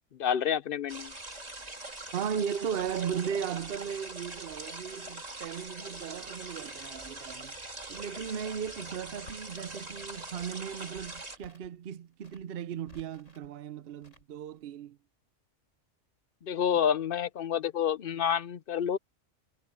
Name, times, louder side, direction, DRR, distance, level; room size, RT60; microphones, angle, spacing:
voice 1, 0.2-1.1 16.4-19.0, left 8 dB, 55° left, 0.8 m, -28 dB
sound 1, 0.9-11.4, right 2 dB, 35° right, 3.0 m, -43 dB
voice 2, 2.1-7.5 7.9-15.0, right 8 dB, 55° right, 0.8 m, -36 dB
Crackle, 8.4-9.9 10.2-11.8 12.1-13.5 14.0-14.6, left 1 dB, 85° left, 8.1 m, -57 dB
omnidirectional pair, 1.2 m